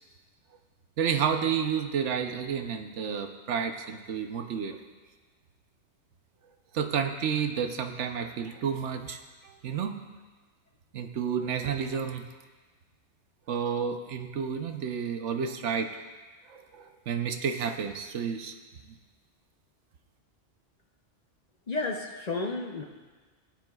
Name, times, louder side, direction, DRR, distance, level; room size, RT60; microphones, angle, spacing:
voice 1, 1.0-4.8 6.7-10.0 10.9-12.2 13.5-15.9 16.5-18.5 18.9-19.0, right 7 dB, 85° right, 6 dB, 1.1 m, -31 dB
voice 2, 21.7-22.8, left 3 dB, 45° left, 4 dB, 0.7 m, -32 dB
16.0 x 9.4 x 2.3 m, 1.3 s
omnidirectional pair, 1.2 m